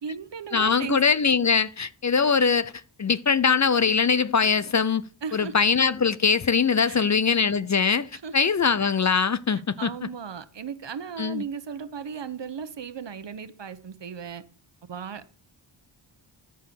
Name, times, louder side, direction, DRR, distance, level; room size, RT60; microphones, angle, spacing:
voice 1, 0.0-1.0 5.2-5.5 6.9-7.1 8.1-8.3 9.5-14.4 14.9-15.3, right 6 dB, 60° right, 1.1 m, -36 dB
voice 2, 0.5-2.7 3.0-5.0 5.3-9.9 11.2-11.4, left 5 dB, 35° left, 0.6 m, -22 dB
13.5 x 4.6 x 6.9 m
cardioid pair, 45°, 48 cm